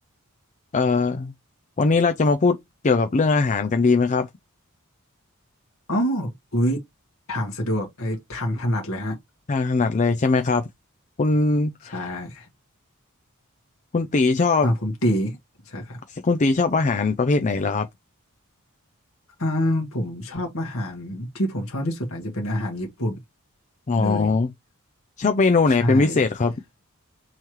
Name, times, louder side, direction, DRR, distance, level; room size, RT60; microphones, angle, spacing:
voice 1, 0.7-1.3 1.8-2.6 2.8-4.3 9.5-10.6 11.2-12.0 13.9-14.7 16.1-17.9 23.9-24.5 25.2-26.5, left 3 dB, 35° left, 0.4 m, -20 dB
voice 2, 5.9-6.8 7.3-9.2 11.8-12.5 14.6-15.4 15.6-16.0 19.4-23.2 23.9-24.3 25.7-26.2, equal, 65° left, 1.6 m, -26 dB
5.5 x 3.1 x 3.0 m
head